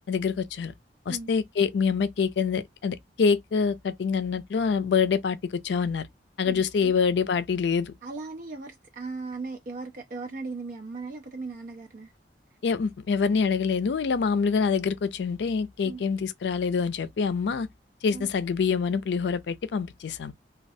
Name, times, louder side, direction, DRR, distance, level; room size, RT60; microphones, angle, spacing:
voice 1, 0.1-0.7 1.1-6.1 6.4-7.9 12.6-17.7 18.0-20.3, left 5 dB, 70° left, 0.4 m, -26 dB
voice 2, 6.4-6.9 8.0-12.1 15.8-16.0 18.1-18.3, right 3 dB, 50° right, 0.4 m, -37 dB
3.1 x 2.3 x 2.6 m
head